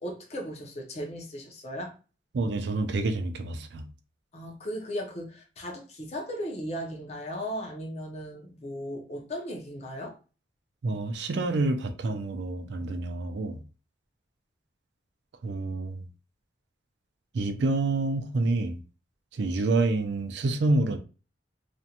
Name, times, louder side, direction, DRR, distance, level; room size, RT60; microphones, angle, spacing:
voice 1, 0.0-1.9 4.3-10.2, equal, 35° left, 0.5 m, -36 dB
voice 2, 2.3-3.9 10.8-13.6 15.4-16.1 17.3-18.8 19.3-21.0, right 2 dB, 65° right, 0.4 m, -28 dB
2.5 x 2.1 x 2.8 m
head